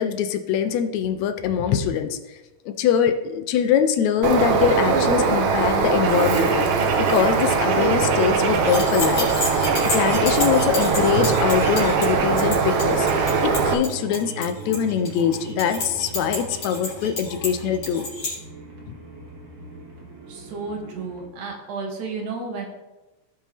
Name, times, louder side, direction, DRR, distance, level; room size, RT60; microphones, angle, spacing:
voice 1, 0.0-2.4 2.7-9.3 9.8-13.1 13.4-18.1 18.9-19.0, left 8 dB, 75° left, 9 dB, 1.9 m, -23 dB
Bird, 4.2-13.7, right 5 dB, 70° right, 1.3 m, -21 dB
sound 1, 8.5-18.3, left 2 dB, 60° left, 3.8 m, -30 dB
sound 2, 9.4-21.3, right 3 dB, 45° right, 2.0 m, -40 dB
voice 2, 20.3-22.7, right 4 dB, 85° right, 1 dB, 3.0 m, -32 dB
16.5 x 5.5 x 3.4 m, 1.1 s
omnidirectional pair, 3.4 m